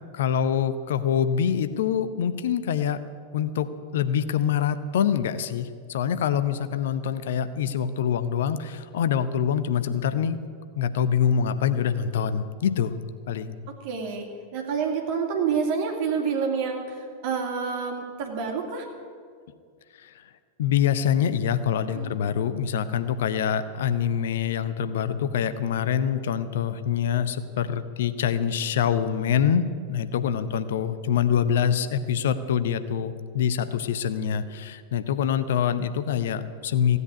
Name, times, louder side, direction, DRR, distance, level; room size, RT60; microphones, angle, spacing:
voice 1, 0.1-3.0 3.3-10.4 10.8-13.0 13.3-13.6 20.0-20.1 20.6-37.0, left 8 dB, 60° left, 12 dB, 0.7 m, -25 dB
voice 2, 13.8-18.9 21.9-22.1 30.6-30.7, right 6 dB, 50° right, 2 dB, 2.4 m, -28 dB
15.5 x 8.2 x 9.4 m, 2.1 s
figure-of-eight pair, 90°, 0 cm